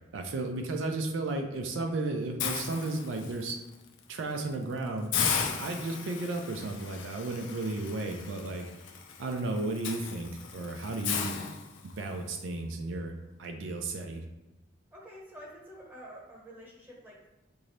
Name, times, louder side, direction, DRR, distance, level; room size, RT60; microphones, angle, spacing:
voice 1, 0.1-3.6 4.1-5.1 5.6-8.7 9.2-11.3 12.0-13.1 13.4-14.2, right 2 dB, 80° right, 3 dB, 0.4 m, -34 dB
Hiss, 2.4-3.5 4.0-4.2 4.5-4.6 5.1-12.2, left 6 dB, 75° left, 0.4 m, -35 dB
voice 2, 14.9-17.3, equal, 10° right, -4 dB, 1.1 m, -48 dB
3.9 x 2.7 x 3.2 m, 1.0 s
head